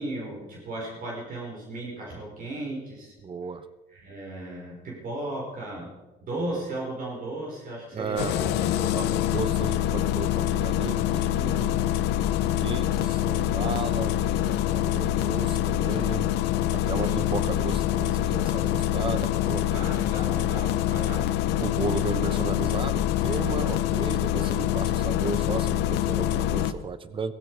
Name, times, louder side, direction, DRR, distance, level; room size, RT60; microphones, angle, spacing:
voice 1, 0.0-3.2 3.9-5.9 6.2-8.4 17.0-17.3 19.7-21.3, right 2 dB, 55° right, -2 dB, 4.8 m, -35 dB
voice 2, 3.2-3.6 6.5-6.7 7.9-11.8 12.2-19.9 21.6-27.3, right 5 dB, 30° right, 14 dB, 1.0 m, -35 dB
Engine starting, 8.2-26.7, left 12 dB, 85° left, 0.8 m, -25 dB
16.5 x 16.0 x 4.8 m, 1.1 s
cardioid pair, 110°, 17 cm